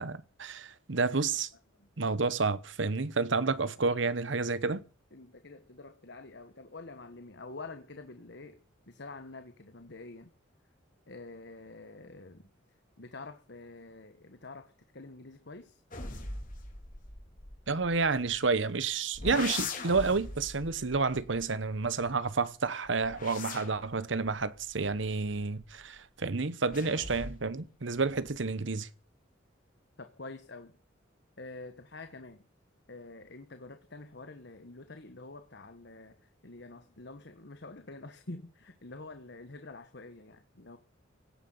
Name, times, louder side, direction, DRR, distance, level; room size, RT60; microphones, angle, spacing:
voice 1, 0.0-1.5 2.0-4.8 17.7-28.9, right 4 dB, 65° right, 1.0 m, -30 dB
voice 2, 5.1-8.6 8.9-10.3 11.1-12.5 13.0-15.8 30.0-30.7 31.4-32.4 32.9-40.8, left 3 dB, 60° left, 1.4 m, -47 dB
sound 1, 15.9-18.6 19.1-22.3 22.8-25.9 26.7-27.6 27.9-28.5, left 3 dB, 45° left, 3.5 m, -42 dB
17.0 x 10.5 x 7.9 m
head